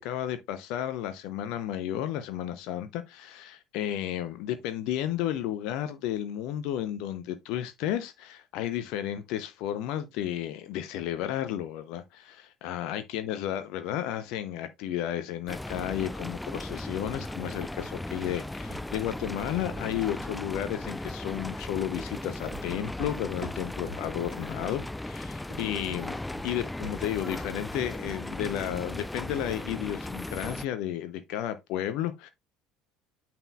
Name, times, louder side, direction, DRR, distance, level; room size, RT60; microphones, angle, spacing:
voice 1, 0.0-32.3, left 11 dB, 55° left, 0.7 m, -33 dB
sound 1, 15.5-30.7, left 1 dB, 10° left, 0.4 m, -37 dB
sound 2, 17.7-20.3 22.0-24.5 25.4-28.0, right 3 dB, 70° right, 3.5 m, -47 dB
8.9 x 6.1 x 2.4 m
figure-of-eight pair, 60°, 0 cm